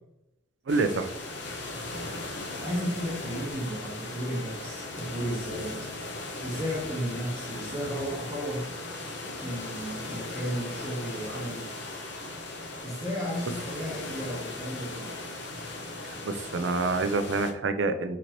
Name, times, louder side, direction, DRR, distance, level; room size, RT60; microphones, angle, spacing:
sound 1, 0.7-17.5, left 2 dB, 70° left, 0.8 m, -38 dB
voice 1, 0.7-1.1 16.0-18.2, right 3 dB, 80° right, 9 dB, 0.5 m, -27 dB
voice 2, 2.6-5.8 6.4-8.7 9.4-11.7 12.8-15.2, equal, 15° right, -6 dB, 0.9 m, -34 dB
4.5 x 3.9 x 2.9 m, 0.86 s
head